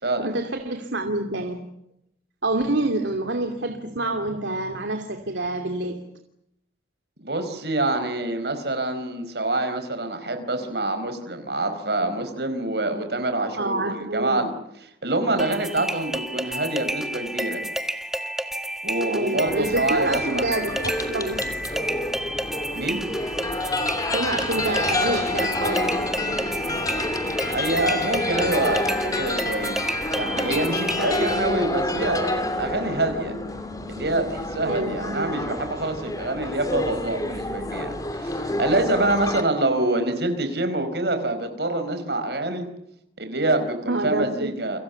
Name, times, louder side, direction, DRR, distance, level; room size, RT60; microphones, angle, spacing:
voice 1, 0.2-1.6 2.4-6.0 13.6-14.5 19.1-21.5 24.1-26.0 34.6-35.4 43.9-44.5, right 2 dB, 90° right, 5 dB, 2.7 m, -27 dB
voice 2, 7.2-14.5 14.8-17.6 18.8-20.5 22.7-23.0 27.4-29.8 30.2-33.4 33.9-42.7 43.2-44.8, right 2 dB, 65° right, 7 dB, 4.8 m, -26 dB
sound 1, 15.4-31.4, equal, 5° right, 1.5 m, -30 dB
sound 2, 19.4-39.4, left 2 dB, 20° left, 3.0 m, -28 dB
30.0 x 25.0 x 7.1 m, 0.78 s
head